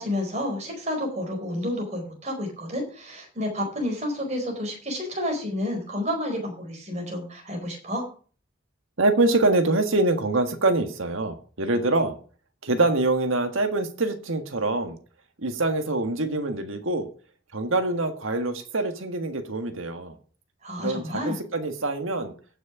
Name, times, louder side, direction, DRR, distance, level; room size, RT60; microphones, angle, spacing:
voice 1, 0.0-8.0 20.6-21.4, left 1 dB, 35° right, 2 dB, 4.5 m, -30 dB
voice 2, 9.0-12.2 12.6-15.0 15.4-17.1 17.5-20.2 20.8-22.3, right 2 dB, 75° right, 7 dB, 1.7 m, -25 dB
15.5 x 6.5 x 5.0 m, 0.41 s
head